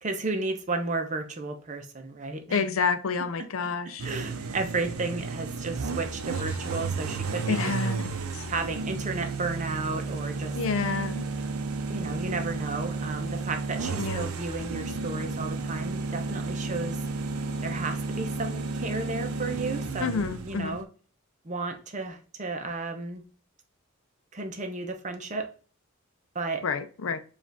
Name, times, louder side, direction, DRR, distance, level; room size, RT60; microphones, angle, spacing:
voice 1, 0.0-2.7 3.4-7.7 8.5-10.6 11.9-17.0 17.6-20.9 21.4-23.2 24.3-25.5 26.3-26.6, right 3 dB, 35° right, 5 dB, 0.7 m, -33 dB
voice 2, 2.5-4.1 7.5-8.4 10.5-11.2 14.0-14.3 20.0-20.8 26.6-27.2, left 5 dB, 70° left, 11 dB, 0.5 m, -29 dB
sound 1, 4.0-20.8, right 3 dB, 85° right, 0.6 m, -32 dB
4.8 x 2.5 x 3.3 m, 0.38 s
head